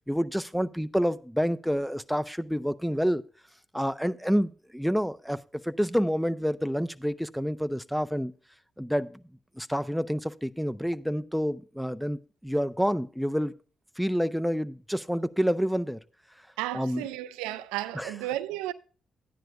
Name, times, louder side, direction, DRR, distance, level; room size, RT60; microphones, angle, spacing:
voice 1, 0.1-3.2 3.7-8.3 8.8-9.2 9.6-13.6 14.0-16.0 16.7-17.1 17.9-18.1, equal, ahead, 0.6 m, -28 dB
voice 2, 16.6-18.7, right 14 dB, 80° right, 0.3 m, -33 dB
13.5 x 10.0 x 2.4 m
hypercardioid pair, 40°, 0 cm